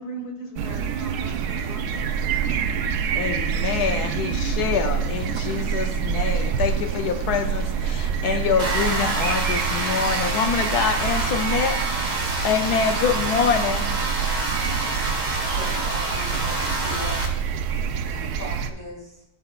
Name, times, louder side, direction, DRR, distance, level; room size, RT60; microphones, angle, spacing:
voice 1, 0.0-2.9, right 1 dB, 55° left, 1.8 m, -40 dB
sound 1, 0.6-18.7, right 7 dB, 80° right, 1.2 m, -26 dB
voice 2, 3.1-12.1 12.4-13.9, left 6 dB, 75° left, 1.1 m, -25 dB
sound 2, 8.6-17.3, right 2 dB, 40° right, 1.9 m, -27 dB
voice 3, 15.5-17.2 18.1-19.2, equal, 10° right, 2.5 m, -38 dB
16.5 x 7.1 x 2.3 m
omnidirectional pair, 1.7 m